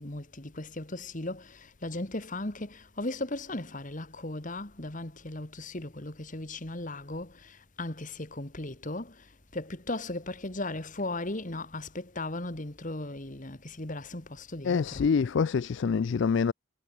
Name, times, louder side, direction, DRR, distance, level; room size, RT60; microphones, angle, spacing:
voice 1, 0.0-9.3 9.5-15.1, left 2 dB, 35° left, 1.8 m, -37 dB
voice 2, 14.6-16.5, left 5 dB, 55° left, 0.3 m, -26 dB
head